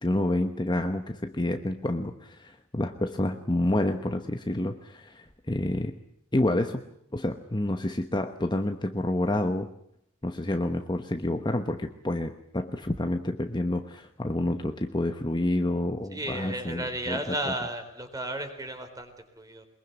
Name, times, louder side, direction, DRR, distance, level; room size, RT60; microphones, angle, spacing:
voice 1, 0.0-6.0 6.3-6.8 7.1-9.7 10.2-17.2, left 1 dB, 20° left, 7 dB, 1.0 m, -28 dB
voice 2, 16.1-19.6, right 1 dB, 15° right, 7 dB, 3.9 m, -34 dB
23.0 x 22.0 x 9.3 m, 0.70 s
head